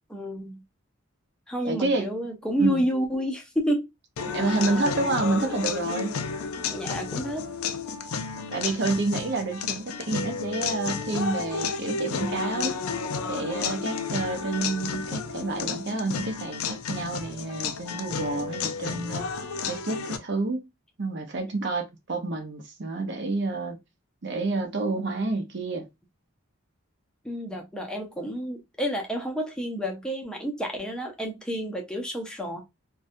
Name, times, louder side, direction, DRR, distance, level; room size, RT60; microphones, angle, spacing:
voice 1, 0.1-0.6 1.5-3.9 6.5-7.5 27.2-32.6, equal, 5° left, 0.5 m, -29 dB
voice 2, 1.6-2.1 2.6-2.8 4.3-6.2 8.5-12.8 13.3-19.3 19.7-20.6 21.0-23.8 24.2-25.9, right 3 dB, 55° right, 0.6 m, -29 dB
sound 1, 4.2-20.2, left 5 dB, 85° left, 0.4 m, -32 dB
2.6 x 2.3 x 2.5 m
head